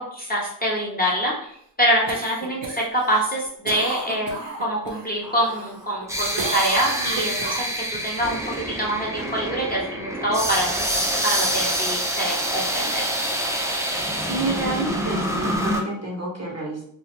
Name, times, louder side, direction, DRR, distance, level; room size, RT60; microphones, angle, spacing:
voice 1, 0.0-1.5 1.8-13.1, equal, 20° left, -4 dB, 0.7 m, -25 dB
Cough, 2.1-5.1 5.5-6.1 6.4-8.0 12.5-12.6, right 3 dB, 80° right, 0.6 m, -33 dB
sound 1, 5.2-15.8, equal, 5° right, 0.4 m, -26 dB
voice 2, 14.2-16.8, right 2 dB, 40° right, -2 dB, 0.7 m, -29 dB
2.3 x 2.1 x 2.9 m, 0.66 s
wide cardioid pair, 85°, 42 cm